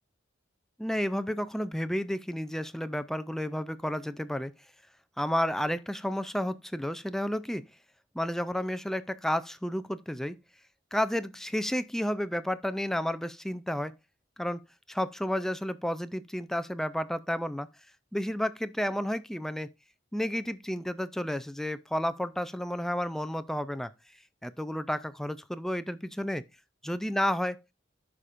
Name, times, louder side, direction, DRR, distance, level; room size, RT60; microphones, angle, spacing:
voice 1, 0.8-4.5 5.2-7.6 8.1-10.4 10.9-13.9 14.4-14.6 14.9-17.7 18.1-19.7 20.1-23.9 24.4-26.4 26.8-27.6, equal, ahead, 0.3 m, -31 dB
14.0 x 5.0 x 2.5 m
head